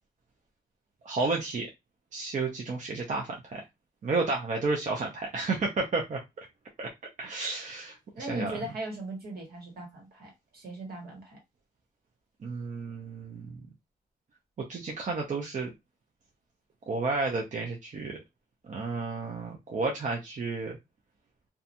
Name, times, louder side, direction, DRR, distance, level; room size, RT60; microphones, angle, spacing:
voice 1, 1.0-1.7 2.1-3.6 4.0-6.2 6.8-6.9 7.2-8.5 12.4-13.6 14.7-15.7 16.9-18.2 18.7-20.7, right 3 dB, 50° right, 0.6 m, -31 dB
voice 2, 8.1-11.4, right 1 dB, 75° right, 1.4 m, -38 dB
2.8 x 2.3 x 2.5 m
wide cardioid pair, 105°, 16 cm